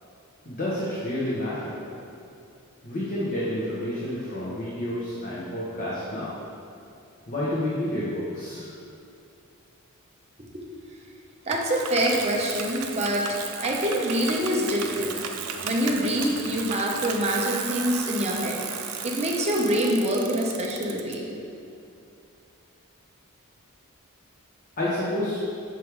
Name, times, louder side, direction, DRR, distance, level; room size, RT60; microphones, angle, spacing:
voice 1, 0.4-1.8 2.8-6.3 7.3-8.7 24.8-25.4, left 1 dB, 40° left, -8 dB, 0.9 m, -29 dB
voice 2, 11.5-15.2 15.6-21.2, equal, 30° right, -2 dB, 0.7 m, -26 dB
Bicycle, 11.5-21.1, right 7 dB, 85° right, 0.5 m, -34 dB
6.3 x 3.4 x 4.6 m, 2.6 s
head